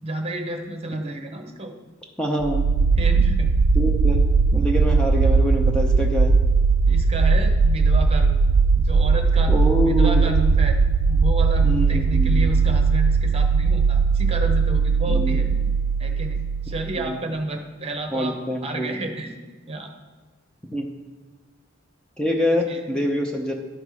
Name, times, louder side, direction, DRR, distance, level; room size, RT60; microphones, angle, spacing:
voice 1, 0.0-1.8 3.0-3.5 6.9-8.4 8.8-9.5 9.8-10.8 11.1-15.5 16.0-18.3 18.6-19.4 19.7-19.9 22.7-22.8, right 1 dB, 30° right, 4 dB, 0.9 m, -30 dB
voice 2, 2.2-2.7 3.7-6.4 9.5-10.2 11.6-12.5 15.1-15.4 17.1-17.2 18.1-19.0 20.7-20.9 22.2-23.5, equal, 5° left, 0 dB, 0.6 m, -25 dB
sound 1, 2.4-17.2, right 4 dB, 75° right, 0.4 m, -19 dB
11.0 x 5.4 x 4.8 m, 1.3 s
head